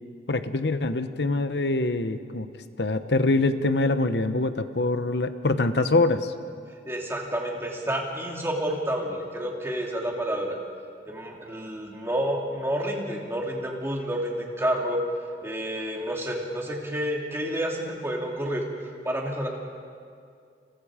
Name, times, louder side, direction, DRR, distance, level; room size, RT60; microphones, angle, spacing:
voice 1, 0.3-2.5 2.8-6.3, left 2 dB, 70° left, 10 dB, 1.0 m, -24 dB
voice 2, 6.8-10.6 11.1-15.0 15.4-18.6 19.0-19.5, right 1 dB, 15° right, -1 dB, 3.0 m, -29 dB
30.0 x 28.0 x 5.0 m, 2.3 s
head